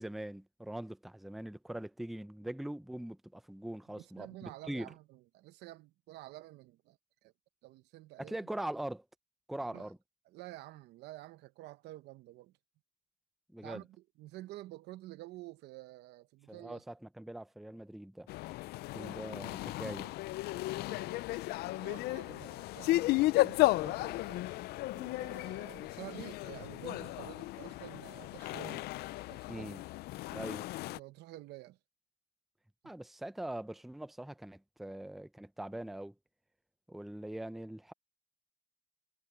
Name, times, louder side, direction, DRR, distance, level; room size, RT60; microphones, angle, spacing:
voice 1, 0.0-4.9 8.2-9.0 9.5-10.0 13.5-13.8 16.5-18.3 18.9-20.1 29.5-29.8 30.3-30.7 32.8-36.1 36.9-37.9, right 1 dB, ahead, 0.6 m, -42 dB
voice 2, 4.0-7.0 7.2-7.3 7.6-8.4 9.6-9.9 10.3-12.5 13.6-16.8 20.9-21.2 21.6-24.4 24.9-28.9 29.3-29.7 30.9-31.8, right 17 dB, 70° right, 0.9 m, -50 dB
sound 1, 18.3-31.0, left 18 dB, 65° left, 0.4 m, -34 dB
cardioid pair, 145°, 18 cm